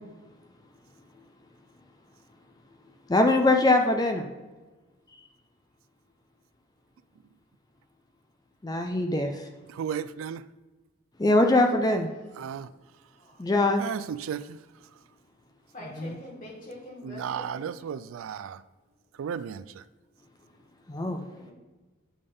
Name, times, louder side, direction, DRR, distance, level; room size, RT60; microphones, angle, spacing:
voice 1, 3.1-4.2 8.6-9.3 11.2-12.1 13.4-13.8 15.9-16.2 20.9-21.2, left 2 dB, 20° left, 0.4 m, -22 dB
voice 2, 9.7-10.4 12.4-12.7 13.8-14.6 17.0-18.6 19.2-19.6, right 7 dB, 85° right, 0.3 m, -34 dB
voice 3, 15.7-17.7 21.0-21.5, left 1 dB, 40° left, 2.5 m, -44 dB
8.7 x 3.5 x 5.3 m
head